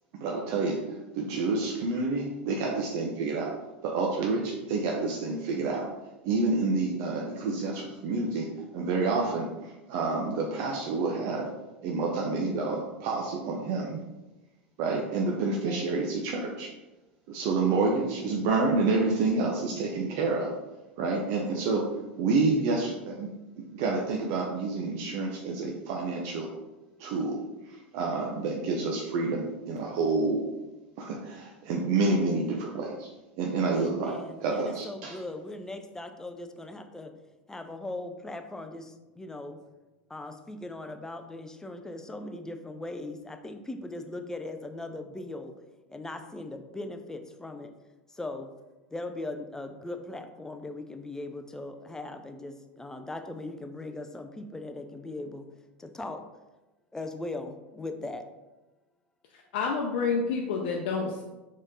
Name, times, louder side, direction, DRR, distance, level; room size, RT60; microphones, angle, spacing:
voice 1, 0.1-3.5 3.8-5.9 6.2-11.5 11.8-14.0 14.8-16.7 17.3-20.5 21.0-23.3 23.6-26.5 27.0-27.4 27.7-30.4 31.0-33.1 33.4-35.2, right 3 dB, 60° right, -1 dB, 0.7 m, -28 dB
voice 2, 33.7-37.1 37.5-39.6 40.1-45.5 45.9-47.7 48.1-48.5 48.9-55.5 55.8-56.2 56.9-58.2, left 2 dB, 10° left, 7 dB, 0.5 m, -39 dB
voice 3, 59.5-61.2, left 4 dB, 65° left, -1 dB, 0.6 m, -28 dB
4.2 x 3.1 x 3.9 m, 1.1 s
hypercardioid pair, 90°, 6 cm